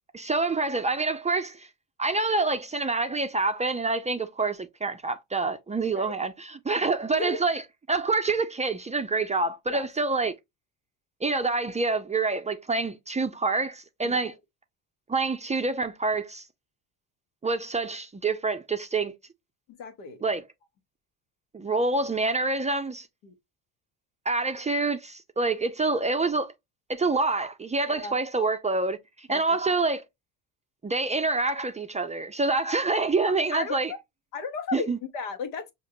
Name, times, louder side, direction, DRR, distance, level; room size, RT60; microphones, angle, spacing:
voice 1, 0.1-1.7 2.0-7.6 7.9-10.3 11.2-14.3 15.1-16.4 17.4-19.2 20.2-20.4 21.5-23.1 24.3-26.5 26.9-30.0 30.8-33.9 34.7-35.0, right 3 dB, 15° right, 0.4 m, -27 dB
voice 2, 6.8-7.4 9.7-9.9 14.0-14.3 19.7-20.2 23.2-23.3 27.9-28.2 29.3-29.6 33.2-34.0 34.3-35.7, left 5 dB, 80° left, 1.0 m, -35 dB
5.6 x 2.6 x 2.7 m
hypercardioid pair, 65°, 42 cm